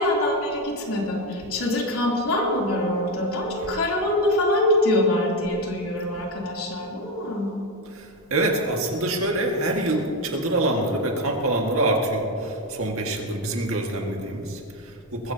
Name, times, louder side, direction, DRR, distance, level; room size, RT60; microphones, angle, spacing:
voice 1, 0.0-7.5, left 1 dB, 80° left, -3 dB, 3.2 m, -24 dB
voice 2, 7.9-15.3, right 1 dB, 70° right, 1 dB, 1.9 m, -25 dB
20.5 x 15.5 x 2.9 m, 2.8 s
head